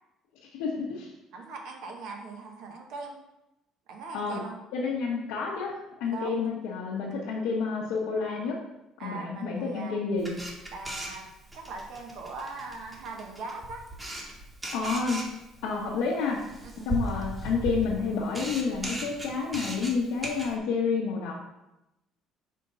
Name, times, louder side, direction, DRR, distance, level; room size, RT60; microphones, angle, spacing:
voice 1, 0.6-1.1 4.1-4.4 4.7-8.6 9.0-10.3 14.7-15.2 15.6-16.4 16.8-21.3, left 5 dB, 85° left, -5 dB, 1.1 m, -29 dB
voice 2, 1.3-3.1 3.9-4.6 6.1-6.4 9.0-10.0 10.7-11.3 11.5-13.8 16.6-16.9, right 3 dB, 70° right, 2 dB, 1.3 m, -40 dB
Camera, 10.2-20.6, right 1 dB, 15° right, 1.4 m, -38 dB
5.1 x 3.7 x 5.5 m, 0.92 s
cardioid pair, 115°, 0 cm